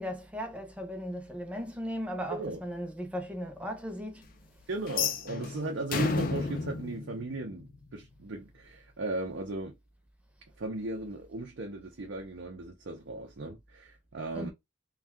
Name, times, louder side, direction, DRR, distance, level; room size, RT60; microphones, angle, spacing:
voice 1, 0.0-4.3 14.3-14.5, equal, 5° right, 0.6 m, -37 dB
voice 2, 2.3-2.6 4.7-9.7 10.6-14.5, right 2 dB, 85° right, 0.6 m, -37 dB
sound 1, 4.9-8.0, left 4 dB, 50° left, 0.4 m, -32 dB
2.6 x 2.3 x 3.4 m
head